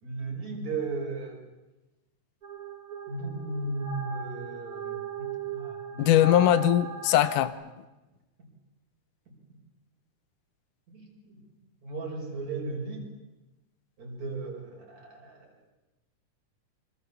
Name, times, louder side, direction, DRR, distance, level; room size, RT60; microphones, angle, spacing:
voice 1, 0.0-1.4 3.1-6.2 9.3-9.4 10.9-11.4 11.8-13.1 14.0-15.5, right 3 dB, 60° right, 0 dB, 7.0 m, -36 dB
sound 1, 2.4-7.5, right 4 dB, 30° right, 2.8 m, -38 dB
voice 2, 6.0-7.5, left 12 dB, 85° left, 13 dB, 2.6 m, -21 dB
26.0 x 24.5 x 7.2 m, 1.1 s
omnidirectional pair, 3.6 m